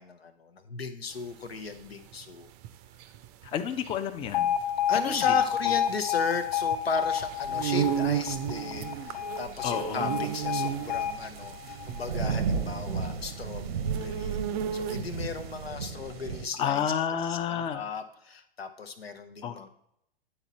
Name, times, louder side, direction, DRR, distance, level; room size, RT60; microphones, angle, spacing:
voice 1, 0.0-2.5 4.9-14.4 14.7-16.9 17.2-19.7, left 5 dB, 90° left, 8 dB, 0.8 m, -35 dB
sound 1, 1.2-15.4, right 10 dB, 40° right, 0.5 m, -34 dB
voice 2, 3.4-4.6 4.9-5.4 9.6-10.1 16.6-17.9 19.4-19.7, left 8 dB, 20° left, 8 dB, 0.4 m, -30 dB
Alarm, 4.3-12.4, left 9 dB, 60° left, 1.3 m, -30 dB
sound 2, 7.1-16.5, right 5 dB, 80° right, 0.9 m, -36 dB
8.9 x 4.2 x 4.1 m, 0.74 s
hypercardioid pair, 105°, 30 cm